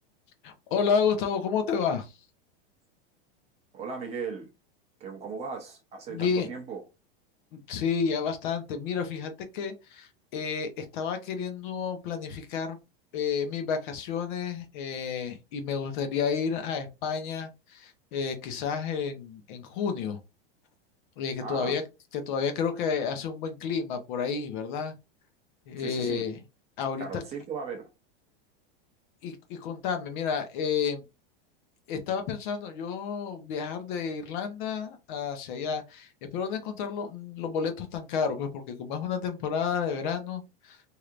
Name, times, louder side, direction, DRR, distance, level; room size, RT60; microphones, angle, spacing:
voice 1, 0.4-2.1 6.1-6.5 7.7-12.8 13.1-20.2 21.2-21.8 22.1-24.9 25.7-26.4 26.8-27.0 29.2-31.0 31.9-40.8, left 6 dB, 55° left, 0.9 m, -31 dB
voice 2, 3.7-4.5 5.0-6.8 21.4-21.8 25.8-26.3 27.0-27.9, right 5 dB, 20° right, 0.7 m, -37 dB
3.2 x 2.8 x 2.4 m
supercardioid pair, 155°, 30 cm